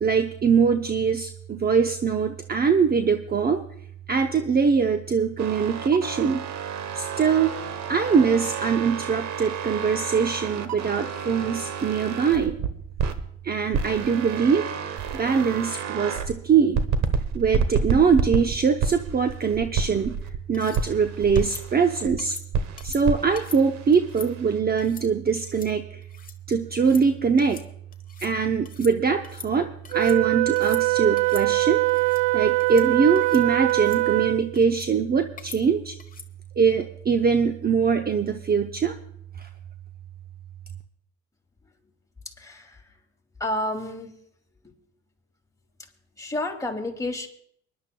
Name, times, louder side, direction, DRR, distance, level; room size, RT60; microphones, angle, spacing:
voice 1, 0.0-3.6 4.1-6.4 6.9-7.5 7.9-12.6 13.4-14.7 15.1-16.8 17.3-20.2 20.5-22.4 22.8-26.0 26.5-27.6 28.2-31.8 32.3-35.9 36.6-38.9 39.4-39.5, right 6 dB, 30° right, 6 dB, 0.7 m, -22 dB
sound 1, 5.4-13.2 13.7-16.3 16.7-20.4 20.7-22.2 22.5-24.6, right 6 dB, 65° right, 1.1 m, -30 dB
sound 2, 20.5-20.8 21.4-21.6 22.2-22.5 22.8-23.0 23.4-23.6 23.9-24.3 24.8-25.1 25.4-25.7 26.0-26.4 26.7-27.0 27.4-27.7 27.9-28.3 28.7-28.9 29.2-30.2 30.5-30.8 31.2-31.5 31.9-32.2 32.6-32.9 33.2-33.4 33.7-34.0 34.6-34.9 35.4-35.6 36.0-36.3, left 5 dB, 30° left, 1.1 m, -43 dB
Wind instrument woodwind instrument, 29.9-34.5, right 23 dB, 80° right, 0.5 m, -22 dB
voice 2, 42.3-43.0 43.4-44.2 44.6-44.7 46.2-47.3, left 1 dB, 10° left, 1 dB, 2.5 m, -30 dB
24.0 x 11.5 x 2.3 m, 0.67 s
supercardioid pair, 80°, 30 cm